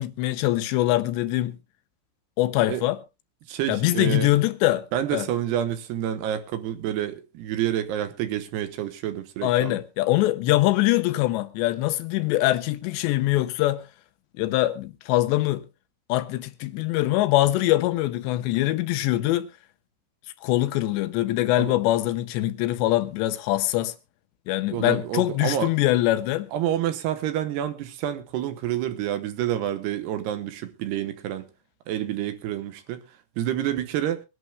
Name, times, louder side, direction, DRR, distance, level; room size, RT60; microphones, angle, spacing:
voice 1, 0.0-1.6 2.4-3.0 3.7-4.8 5.1-5.3 9.4-13.8 14.4-15.6 16.1-19.5 20.4-23.9 24.5-26.5, left 16 dB, 85° left, 3.0 m, -23 dB
voice 2, 3.5-4.3 4.9-9.8 21.6-21.8 24.7-25.7 26.5-31.5 31.9-33.0 33.4-34.2, right 11 dB, 75° right, 2.9 m, -28 dB
24.0 x 11.0 x 2.2 m
omnidirectional pair, 5.0 m